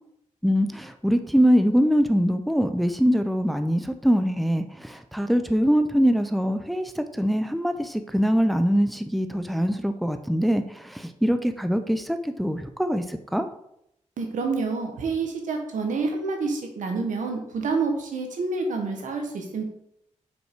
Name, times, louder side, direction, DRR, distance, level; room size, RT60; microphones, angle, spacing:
voice 1, 0.4-13.5, equal, ahead, 8 dB, 0.6 m, -23 dB
voice 2, 14.2-19.6, right 4 dB, 85° right, 3 dB, 1.3 m, -28 dB
5.4 x 4.6 x 4.5 m, 0.77 s
cardioid pair, 60°, 13 cm